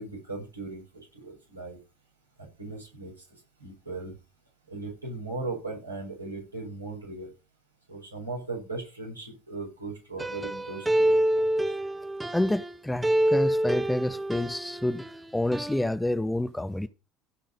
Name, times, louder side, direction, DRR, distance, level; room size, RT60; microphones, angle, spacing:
voice 1, 0.0-1.8 2.4-3.2 3.6-4.1 4.7-7.3 7.9-11.7, right 3 dB, 85° right, 5.0 m, -38 dB
sound 1, 10.2-12.8 13.0-15.2 15.5-15.8, right 1 dB, 10° right, 1.2 m, -27 dB
voice 2, 12.3-15.0 15.3-16.9, left 1 dB, 5° left, 0.9 m, -28 dB
16.0 x 5.7 x 5.3 m
figure-of-eight pair, 65°, 0 cm